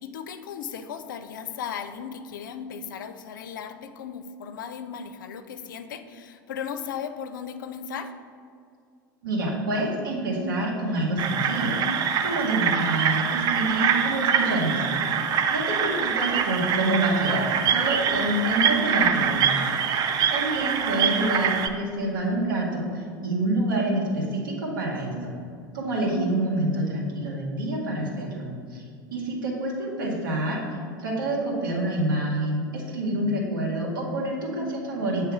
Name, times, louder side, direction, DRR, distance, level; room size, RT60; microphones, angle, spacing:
voice 1, 0.0-8.1 20.8-21.2, left 7 dB, 65° left, 9 dB, 0.4 m, -36 dB
voice 2, 9.2-15.1 15.5-19.6 19.9-20.0 20.3-25.3 25.7-28.8 29.1-30.6 31.0-35.3, right 1 dB, 70° right, -3 dB, 1.5 m, -27 dB
sound 1, 11.2-21.7, right 7 dB, 35° right, 0.5 m, -24 dB
7.9 x 3.3 x 4.7 m, 2.3 s
figure-of-eight pair, 80°, 11 cm